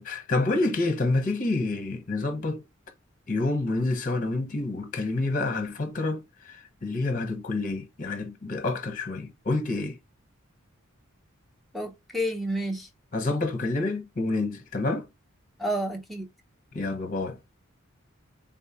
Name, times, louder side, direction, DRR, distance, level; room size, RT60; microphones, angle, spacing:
voice 1, 0.0-2.6 3.3-10.0 13.1-15.1 16.7-17.4, left 2 dB, 40° left, 0.8 m, -28 dB
voice 2, 11.7-12.9 15.6-16.3, equal, ahead, 0.7 m, -30 dB
3.6 x 3.0 x 2.4 m
head